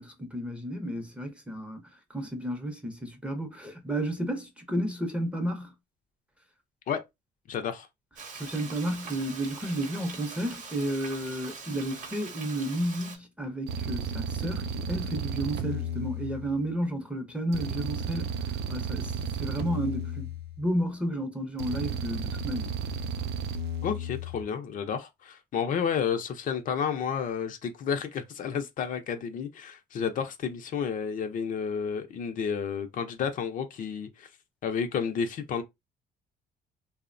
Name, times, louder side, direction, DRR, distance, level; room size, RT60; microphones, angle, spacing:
voice 1, 0.0-5.7 8.3-18.3 18.7-22.7, right 1 dB, 5° right, 0.6 m, -32 dB
voice 2, 7.5-7.9 23.8-34.3 34.6-35.6, left 7 dB, 50° left, 0.5 m, -31 dB
Frying (food), 8.2-13.2, right 4 dB, 45° right, 0.8 m, -43 dB
sound 1, 13.7-16.8 17.5-20.8 21.6-24.4, right 3 dB, 75° right, 0.4 m, -33 dB
2.7 x 2.0 x 2.5 m
cardioid pair, 110°, 17 cm